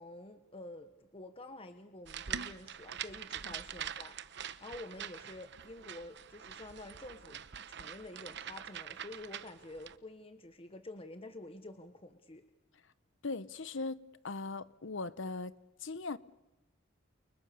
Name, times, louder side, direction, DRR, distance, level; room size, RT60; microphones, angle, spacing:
voice 1, 0.0-4.2 4.6-12.4, left 2 dB, 30° left, 1.3 m, -49 dB
sound 1, 2.1-10.0, right 8 dB, 60° right, 1.0 m, -44 dB
voice 2, 13.2-15.5 15.8-16.2, left 3 dB, 70° left, 0.9 m, -39 dB
29.5 x 29.0 x 6.8 m
head